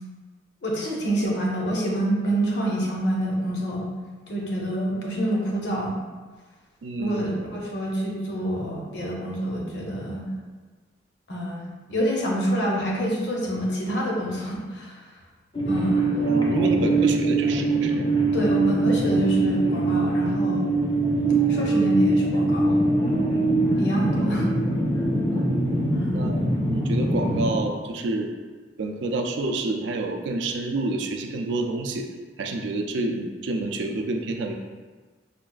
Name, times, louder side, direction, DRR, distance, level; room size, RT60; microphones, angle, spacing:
voice 1, 0.6-3.9 4.3-6.0 7.0-10.2 11.3-15.0 15.7-16.2 18.3-20.7 21.5-22.8 23.8-24.5 25.9-26.3, right 1 dB, 60° left, -3 dB, 0.7 m, -27 dB
voice 2, 6.8-7.4 16.2-18.1 24.8-24.9 25.3-25.7 26.1-26.4 26.7-28.3 28.8-32.1 32.4-34.5, right 2 dB, 70° right, 4 dB, 0.4 m, -28 dB
sound 1, 15.5-27.6, right 2 dB, 25° left, 0.5 m, -22 dB
5.1 x 2.3 x 2.3 m, 1.4 s
head